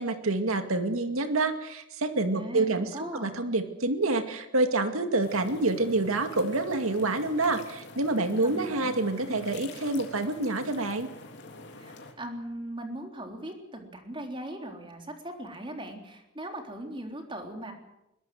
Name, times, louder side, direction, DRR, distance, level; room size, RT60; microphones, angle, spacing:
voice 1, 0.0-11.1, right 2 dB, 85° right, 7 dB, 2.2 m, -27 dB
voice 2, 2.3-3.5 8.4-8.9 9.3-9.5 11.8-17.7, right 1 dB, 25° right, 4 dB, 3.6 m, -39 dB
sound 1, 5.2-12.1, left 2 dB, 55° left, 3.5 m, -46 dB
21.5 x 21.5 x 7.8 m, 0.88 s
head